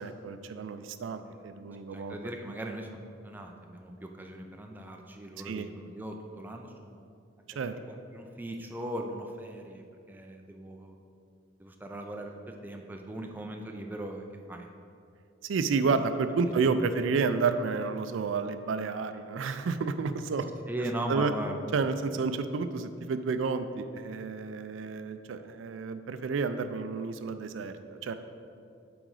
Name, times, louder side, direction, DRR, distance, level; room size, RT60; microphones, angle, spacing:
voice 1, 0.0-2.2 5.4-5.7 7.6-7.7 15.4-20.5 21.1-21.3 21.7-28.1, right 4 dB, 80° right, 10 dB, 0.4 m, -30 dB
voice 2, 1.9-3.0 3.2-7.1 7.5-11.0 11.6-14.7 16.6-16.7 20.7-21.6, right 1 dB, 10° right, 2 dB, 0.4 m, -39 dB
7.5 x 4.0 x 4.7 m, 2.5 s
head